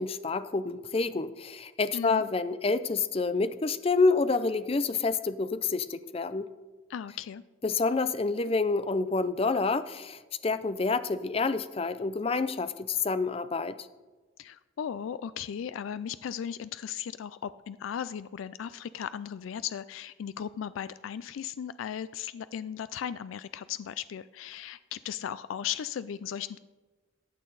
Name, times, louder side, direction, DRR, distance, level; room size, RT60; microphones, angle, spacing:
voice 1, 0.0-6.5 7.6-13.8, left 4 dB, 30° left, 13 dB, 0.5 m, -28 dB
voice 2, 6.9-7.4 14.4-26.6, left 8 dB, 90° left, 15 dB, 0.3 m, -37 dB
14.5 x 8.9 x 3.9 m, 1.3 s
head